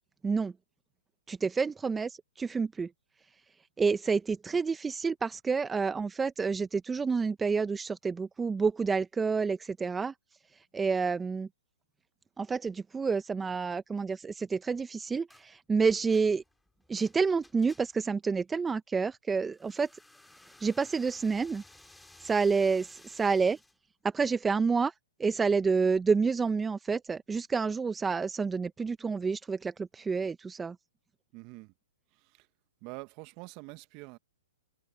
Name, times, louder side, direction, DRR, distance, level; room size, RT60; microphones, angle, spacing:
voice 1, 1.3-2.9 3.8-10.1 10.7-11.5 12.4-16.4 16.9-19.9 20.6-21.6 22.2-23.6 24.0-24.9 25.2-30.8, right 5 dB, 10° right, 1.0 m, -29 dB
sound 1, 15.3-15.5 15.9-18.1 19.5-23.8, left 2 dB, 5° left, 3.5 m, -57 dB
voice 2, 31.3-31.7 32.8-34.2, right 26 dB, 40° right, 1.6 m, -45 dB
hypercardioid pair, 125°, 0 cm